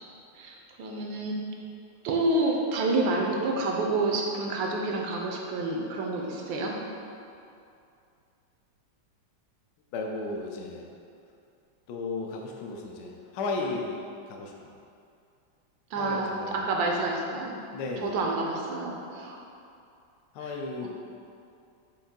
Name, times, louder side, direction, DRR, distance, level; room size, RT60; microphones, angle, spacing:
voice 1, 0.3-1.5 2.0-6.8 15.9-17.6 18.0-19.4 20.8-20.9, right 2 dB, 80° right, 0 dB, 1.3 m, -28 dB
voice 2, 9.9-10.9 11.9-14.0 14.3-14.7 16.0-16.9 17.7-18.2 20.3-20.9, left 3 dB, 75° left, 0 dB, 1.1 m, -34 dB
5.3 x 2.6 x 3.6 m, 2.5 s
omnidirectional pair, 2.1 m